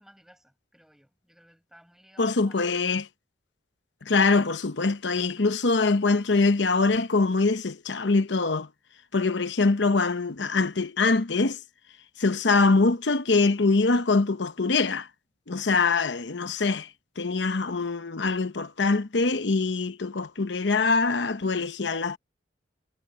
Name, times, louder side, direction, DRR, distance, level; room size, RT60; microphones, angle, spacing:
voice 1, 0.0-3.0 4.0-4.2, equal, 5° right, 7.9 m, -57 dB
voice 2, 2.2-3.0 4.1-8.7 9.1-11.6 12.2-15.1 15.5-16.9 17.2-22.2, left 3 dB, 75° left, 0.9 m, -23 dB
head